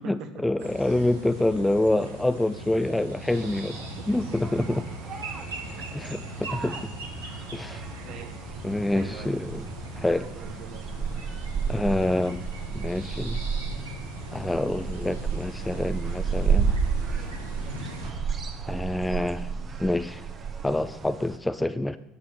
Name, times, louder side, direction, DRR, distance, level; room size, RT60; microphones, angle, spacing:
voice 1, 0.0-3.8 4.1-4.8 5.9-6.9 7.5-7.8 8.6-9.7 9.9-10.3 11.7-12.5 12.7-13.4 14.3-16.8 18.7-19.5 19.8-20.2 20.6-22.0, left 1 dB, 10° left, 12 dB, 0.5 m, -27 dB
sound 1, 0.6-18.1, equal, 80° right, 2.4 m, -40 dB
sound 2, 3.3-21.4, right 6 dB, 35° right, 1.3 m, -32 dB
voice 2, 3.9-4.4 4.7-4.8 5.8-5.9 6.6-6.8 7.7-8.3 8.9-9.4 10.3-10.9 15.0-15.2, right 6 dB, 50° right, 7 dB, 1.4 m, -43 dB
12.0 x 6.0 x 6.9 m, 0.93 s
figure-of-eight pair, 65°, 0 cm